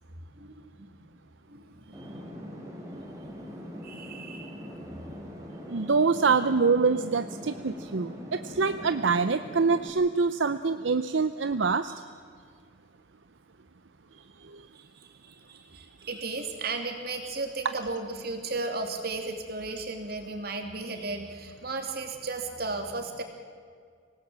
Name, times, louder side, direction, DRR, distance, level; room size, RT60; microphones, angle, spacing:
voice 1, 0.3-1.1 1.5-2.3 2.9-3.3 3.8-4.7 14.7-23.2, right 3 dB, 55° right, 4 dB, 3.0 m, -35 dB
sound 1, 1.9-9.9, equal, 15° right, 3.9 m, -42 dB
voice 2, 5.7-11.9 14.5-14.6, right 4 dB, 80° right, 10 dB, 0.7 m, -25 dB
26.0 x 18.5 x 7.6 m, 2.1 s
head